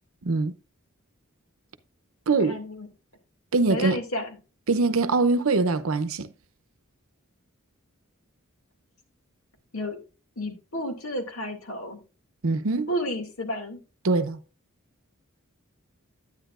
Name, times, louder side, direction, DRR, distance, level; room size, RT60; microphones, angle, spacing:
voice 1, 0.2-0.5 2.3-2.6 3.5-4.0 4.7-6.3 12.4-12.9 14.0-14.4, right 3 dB, 75° right, 0.7 m, -23 dB
voice 2, 2.4-2.9 3.7-4.3 9.7-10.0 10.4-12.0 12.9-13.8, equal, 75° left, 2.3 m, -31 dB
10.5 x 9.6 x 2.5 m
head